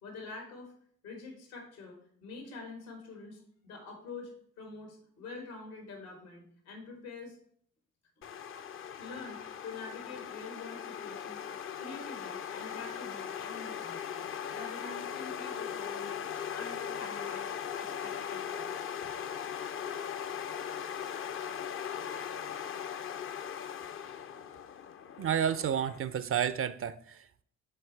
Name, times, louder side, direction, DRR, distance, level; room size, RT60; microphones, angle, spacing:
voice 1, 0.0-0.7 1.0-7.4 8.2-8.3 8.7-11.5 11.8-16.1 16.5-18.8, left 4 dB, 80° left, 2 dB, 1.8 m, -46 dB
sound 1, 8.2-26.0, left 8 dB, 30° left, 0.5 m, -39 dB
voice 2, 25.2-27.4, right 8 dB, 35° right, 15 dB, 0.4 m, -31 dB
9.9 x 4.3 x 3.2 m, 0.62 s
figure-of-eight pair, 45°, 43 cm